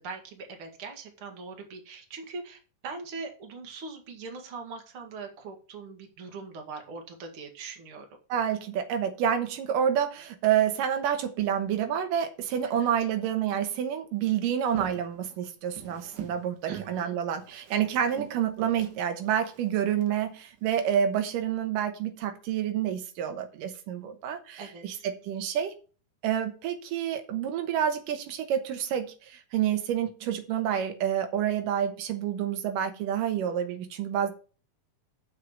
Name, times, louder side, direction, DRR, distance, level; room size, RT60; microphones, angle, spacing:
voice 1, 0.0-8.1 16.7-17.1 24.6-24.8, right 4 dB, 45° right, 2.5 m, -41 dB
voice 2, 8.3-25.7 26.2-34.3, right 9 dB, 90° right, 2.7 m, -28 dB
Walk footsteps, 14.6-16.4 16.7-17.0 17.4-20.1 20.6-20.9, right 9 dB, 70° right, 2.6 m, -43 dB
6.7 x 6.5 x 7.3 m
omnidirectional pair, 3.7 m